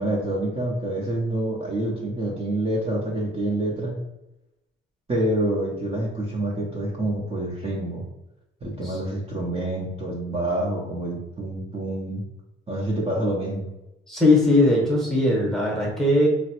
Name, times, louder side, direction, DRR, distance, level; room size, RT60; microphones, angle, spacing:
voice 1, 0.0-3.9 5.1-8.0 8.6-12.2 12.7-13.7, right 1 dB, 30° right, -3 dB, 0.8 m, -27 dB
voice 2, 14.1-16.3, left 2 dB, ahead, -3 dB, 1.0 m, -19 dB
3.3 x 2.0 x 2.9 m, 0.91 s
cardioid pair, 90°, 20 cm